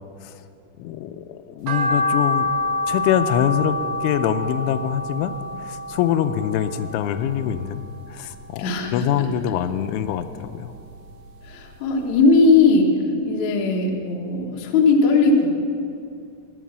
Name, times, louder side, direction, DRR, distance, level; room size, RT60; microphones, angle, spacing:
voice 1, 0.8-2.5 2.9-5.3 5.6-7.8 8.1-10.8, left 10 dB, 90° left, 10 dB, 3.1 m, -24 dB
sound 1, 1.7-8.0 8.3-9.5 9.8-11.3 11.6-11.7 12.2-12.3 12.5-12.6, left 2 dB, 80° right, 1.5 m, -27 dB
voice 2, 8.6-9.3 11.4-12.9 13.2-15.6, left 3 dB, 70° left, 1 dB, 1.8 m, -18 dB
19.5 x 7.4 x 6.1 m, 2.5 s
omnidirectional pair, 5.4 m